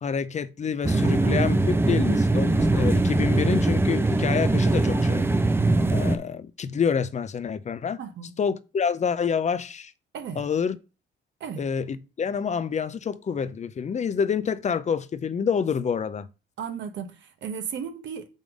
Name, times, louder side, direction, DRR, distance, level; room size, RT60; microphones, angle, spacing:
voice 1, 0.0-5.3 5.9-8.0 8.4-9.9 10.4-10.8 11.6-16.3, left 6 dB, 35° left, 0.5 m, -27 dB
sound 1, 0.8-6.2, right 2 dB, 10° right, 0.5 m, -22 dB
voice 2, 1.0-1.3 8.0-8.3 10.1-10.4 11.4-11.6 16.6-18.3, right 7 dB, 70° right, 1.0 m, -35 dB
5.4 x 3.8 x 4.8 m
cardioid pair, 90°, 20 cm